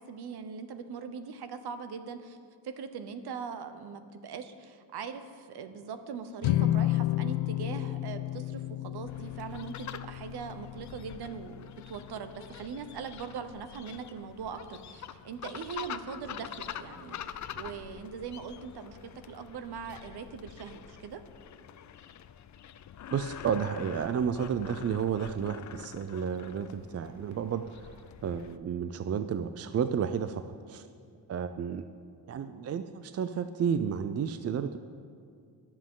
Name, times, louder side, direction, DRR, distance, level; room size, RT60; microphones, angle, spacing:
voice 1, 0.0-2.4 2.6-21.2, right 6 dB, 55° right, 10 dB, 1.0 m, -41 dB
sound 1, 6.4-12.9, left 14 dB, 85° left, 0.6 m, -32 dB
sound 2, 9.1-28.6, left 9 dB, 40° left, 0.5 m, -46 dB
voice 2, 23.1-30.4 30.7-30.9 31.3-31.9 32.3-34.8, right 7 dB, 35° right, 10 dB, 0.4 m, -32 dB
22.0 x 7.5 x 3.8 m, 2.3 s
cardioid pair, 105°, 45 cm